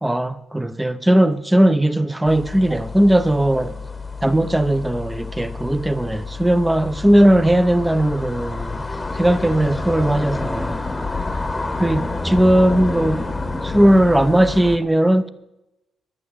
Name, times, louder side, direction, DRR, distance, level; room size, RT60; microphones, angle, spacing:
voice 1, 0.0-3.8 4.2-8.8 9.1-10.8 11.8-13.2 13.6-15.3, right 1 dB, 10° right, 0.9 m, -18 dB
sound 1, 2.2-14.8, left 3 dB, 20° left, 1.2 m, -29 dB
12.0 x 9.7 x 8.0 m
cardioid pair, 90°, 0 cm